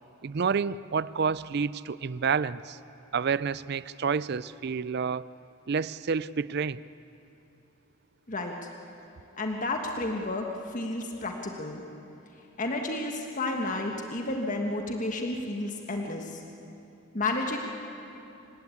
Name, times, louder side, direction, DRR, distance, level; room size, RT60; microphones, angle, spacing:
voice 1, 0.2-2.8 3.1-5.3 5.7-6.8, right 5 dB, 55° right, 18 dB, 0.5 m, -29 dB
voice 2, 9.4-11.8 12.6-16.4 17.1-17.6, left 2 dB, 40° left, 2 dB, 1.6 m, -31 dB
28.5 x 16.5 x 8.6 m, 2.8 s
head